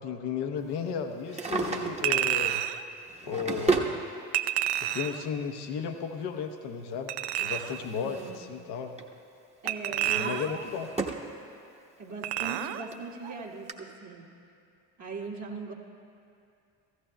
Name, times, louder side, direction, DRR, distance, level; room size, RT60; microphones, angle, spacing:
voice 1, 0.0-2.7 3.2-4.0 4.8-9.0 9.9-10.9, left 6 dB, 60° left, 6 dB, 0.9 m, -34 dB
Drawer open or close, 1.1-2.3 3.0-4.0 5.1-5.2 6.9-8.5 8.8-9.1 9.6-11.3 11.7-11.8 12.6-12.7 12.9-13.0 13.7-13.8, right 4 dB, 15° right, 1.1 m, -33 dB
Chink clink, 2.0-2.8 4.3-5.3 7.1-7.8 9.7-10.6 12.2-12.9 13.2-13.4, right 12 dB, 60° right, 0.5 m, -30 dB
voice 2, 8.0-8.5 9.6-10.3 12.0-14.2 15.0-15.7, right 4 dB, 40° right, -2 dB, 1.4 m, -39 dB
15.5 x 14.0 x 2.2 m, 2.5 s
hypercardioid pair, 55°, 45 cm